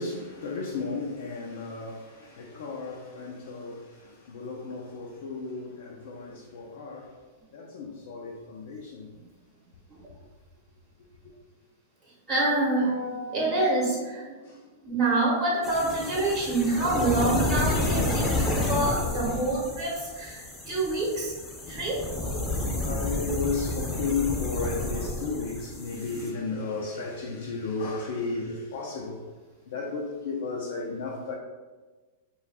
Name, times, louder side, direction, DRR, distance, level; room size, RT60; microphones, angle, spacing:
voice 1, 0.0-7.1 7.5-9.1 11.2-11.3 14.4-14.6 15.9-16.0 19.3-19.4 22.8-29.3 29.7-31.3, left 4 dB, 70° left, 0.4 m, -34 dB
voice 2, 12.3-14.3 14.8-20.4 20.7-21.3 21.7-22.0, right 2 dB, 35° right, 0.8 m, -26 dB
sound 1, 15.6-26.3, left 2 dB, 15° left, 0.6 m, -30 dB
2.3 x 2.2 x 3.3 m
hypercardioid pair, 110°, 0 cm